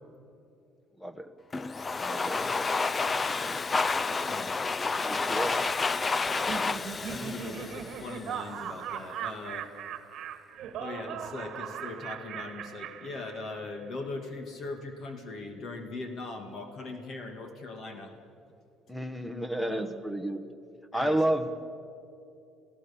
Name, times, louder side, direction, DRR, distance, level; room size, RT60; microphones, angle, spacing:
Domestic sounds home sounds, 1.5-8.4, left 4 dB, 20° left, 0.4 m, -30 dB
voice 1, 2.0-2.7 5.0-5.6 18.9-20.4 20.9-21.5, right 1 dB, ahead, 11 dB, 1.2 m, -31 dB
voice 2, 4.2-4.6 7.1-9.7 10.8-18.1 19.1-19.2 19.6-19.9 20.9-21.2, left 3 dB, 45° left, 5 dB, 2.1 m, -40 dB
Laughter, 6.3-13.8, right 8 dB, 50° right, 1.5 m, -39 dB
29.5 x 16.0 x 7.1 m, 2.7 s
cardioid pair, 145°, 0 cm